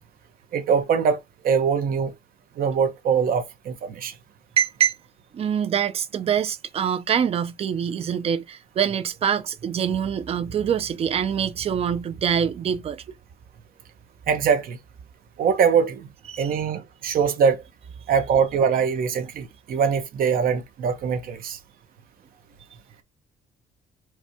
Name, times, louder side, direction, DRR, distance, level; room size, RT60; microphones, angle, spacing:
voice 1, 0.5-1.2 1.4-2.1 2.6-4.1 14.3-14.8 15.4-16.1 16.4-17.6 18.1-21.6, right 6 dB, 60° right, 0.9 m, -22 dB
voice 2, 4.6-4.9 5.3-13.0 16.3-16.6, right 8 dB, 35° right, 0.5 m, -25 dB
4.5 x 2.3 x 2.7 m
cardioid pair, 150°, 17 cm